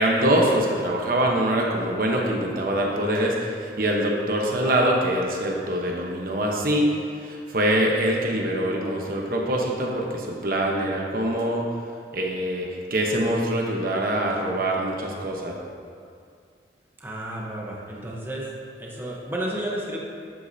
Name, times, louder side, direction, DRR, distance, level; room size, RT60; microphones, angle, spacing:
voice 1, 0.0-11.6 12.1-15.5, right 1 dB, 55° right, -1 dB, 1.1 m, -24 dB
voice 2, 17.0-18.5 18.8-20.0, right 1 dB, 10° right, -4 dB, 1.0 m, -32 dB
12.0 x 8.4 x 2.8 m, 2.3 s
head